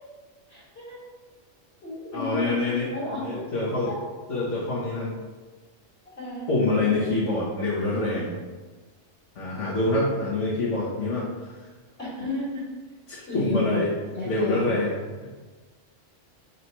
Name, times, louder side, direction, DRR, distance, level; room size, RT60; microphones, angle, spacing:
voice 1, 0.5-1.1 1.8-2.5 2.9-3.5 3.9-4.0 6.2-6.5 12.0-12.6 13.3-13.8 14.1-14.8, left 2 dB, 55° left, -8 dB, 2.2 m, -32 dB
voice 2, 2.1-3.9 4.3-5.1 6.5-8.4 9.3-11.5 13.1-13.9 14.2-14.9 15.2-15.3, left 2 dB, 75° left, -8 dB, 1.6 m, -26 dB
4.5 x 4.1 x 5.4 m, 1.3 s
omnidirectional pair, 1.3 m